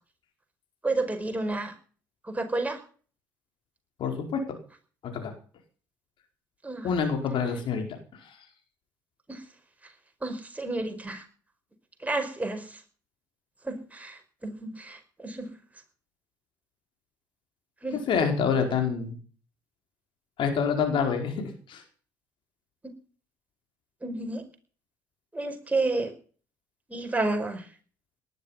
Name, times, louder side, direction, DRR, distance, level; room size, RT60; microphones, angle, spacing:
voice 1, 0.8-1.7 2.2-2.8 6.6-6.9 9.3-9.4 10.2-11.2 12.0-12.8 13.6-15.5 17.8-18.0 24.0-24.4 25.3-26.1 26.9-27.6, right 2 dB, 15° right, 5 dB, 5.0 m, -30 dB
voice 2, 4.0-4.4 5.0-5.3 6.8-7.9 8.2-8.3 17.9-19.2 20.4-21.8, left 6 dB, 60° left, 4 dB, 4.7 m, -27 dB
19.0 x 12.0 x 5.8 m, 0.42 s
hypercardioid pair, 55°, 10 cm